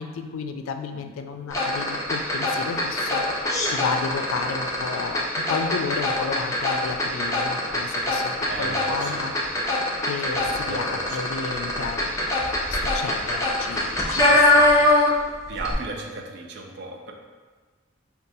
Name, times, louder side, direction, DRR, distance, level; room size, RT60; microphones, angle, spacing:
voice 1, 0.0-9.3 10.0-12.4 12.7-14.9, left 5 dB, 90° left, 6 dB, 0.3 m, -32 dB
sound 1, 1.5-15.3 15.6-15.7, left 1 dB, 15° left, 0.4 m, -23 dB
voice 2, 8.5-9.3 10.4-11.2 14.4-14.8 15.5-17.1, right 3 dB, 55° right, 2 dB, 0.4 m, -36 dB
5.2 x 2.3 x 2.6 m, 1.4 s
head